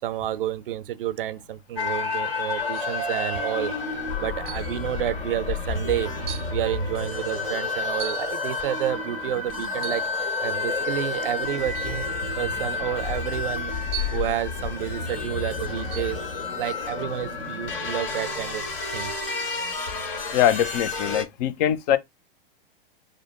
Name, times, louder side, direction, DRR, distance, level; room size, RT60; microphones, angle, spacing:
voice 1, 0.0-3.7 4.2-6.1 6.5-10.1 10.4-12.1 12.4-13.7 14.1-16.2 16.6-18.6 18.9-19.1, right 12 dB, 65° right, 0.6 m, -30 dB
sound 1, 1.8-21.2, left 4 dB, 65° left, 1.9 m, -30 dB
sound 2, 2.7-3.0 4.5-4.8 5.6-5.7 6.3-6.6 8.0-8.4 9.8-10.2 11.7-12.0 13.9-14.3 15.9-16.2, right 12 dB, 20° right, 0.6 m, -37 dB
voice 2, 20.3-22.0, left 10 dB, 45° left, 0.6 m, -22 dB
5.0 x 2.1 x 3.8 m
figure-of-eight pair, 100°, 30 cm